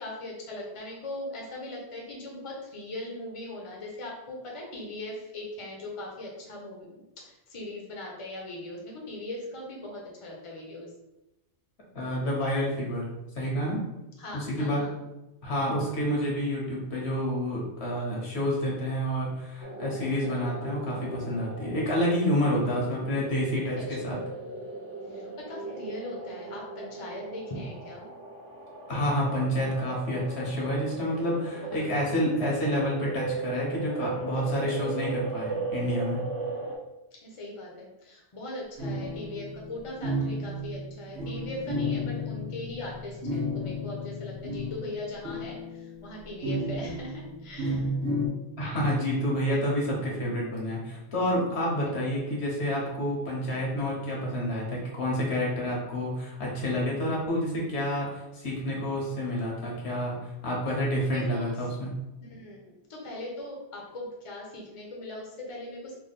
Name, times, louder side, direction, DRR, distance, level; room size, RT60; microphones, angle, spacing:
voice 1, 0.0-10.9 14.2-15.0 23.8-24.1 25.1-28.1 31.7-32.2 37.2-47.9 61.1-61.5 62.2-66.0, left 1 dB, 35° left, -2 dB, 0.8 m, -40 dB
voice 2, 11.9-13.1 13.3-13.8 14.3-14.9 15.4-24.2 28.9-36.2 48.6-61.9, equal, 75° left, -3 dB, 1.4 m, -29 dB
sound 1, 19.6-36.7, right 3 dB, 15° right, 0.6 m, -37 dB
sound 2, 38.8-44.9 45.2-48.3, left 1 dB, 80° right, 1.2 m, -33 dB
3.5 x 2.3 x 4.1 m, 0.95 s
omnidirectional pair, 1.1 m